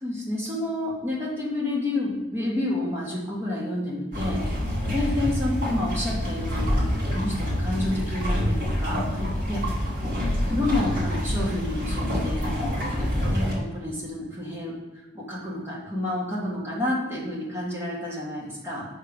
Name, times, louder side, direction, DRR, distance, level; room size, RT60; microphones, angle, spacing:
voice 1, 0.0-4.4 4.9-9.2 9.5-9.6 10.0-10.1 10.4-14.7 15.1-18.8, left 1 dB, 15° right, -5 dB, 1.5 m, -29 dB
sound 1, 4.1-13.5, equal, 45° right, 2.2 m, -27 dB
5.6 x 3.7 x 5.3 m, 1.1 s
head